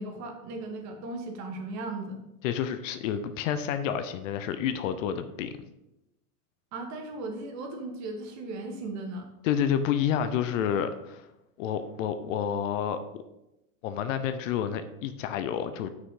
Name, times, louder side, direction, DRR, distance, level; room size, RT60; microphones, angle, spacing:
voice 1, 0.0-2.2 6.7-9.2, right 2 dB, 35° right, 4 dB, 1.6 m, -37 dB
voice 2, 2.4-5.6 9.4-11.3 11.6-13.0 13.8-15.9, left 9 dB, 55° left, 10 dB, 0.8 m, -29 dB
6.1 x 5.8 x 4.9 m, 0.90 s
hypercardioid pair, 125°, 46 cm